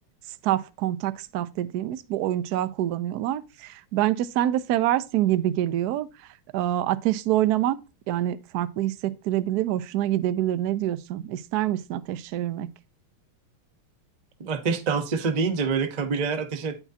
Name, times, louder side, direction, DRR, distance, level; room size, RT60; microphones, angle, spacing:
voice 1, 0.4-6.1 6.5-7.8 8.1-12.7, right 13 dB, 85° right, 0.8 m, -26 dB
voice 2, 14.4-16.8, right 5 dB, 65° right, 0.4 m, -26 dB
9.1 x 5.9 x 2.7 m
omnidirectional pair, 2.3 m